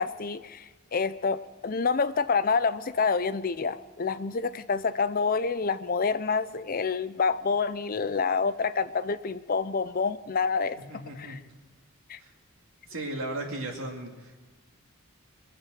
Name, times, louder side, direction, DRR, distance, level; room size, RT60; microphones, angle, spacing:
voice 1, 0.0-10.8 11.2-11.4 12.1-12.2, left 5 dB, 40° left, 14 dB, 0.5 m, -27 dB
voice 2, 10.9-11.4 12.2-12.3 12.9-14.4, right 1 dB, 70° right, 1 dB, 2.4 m, -36 dB
22.5 x 7.6 x 6.3 m, 1.3 s
head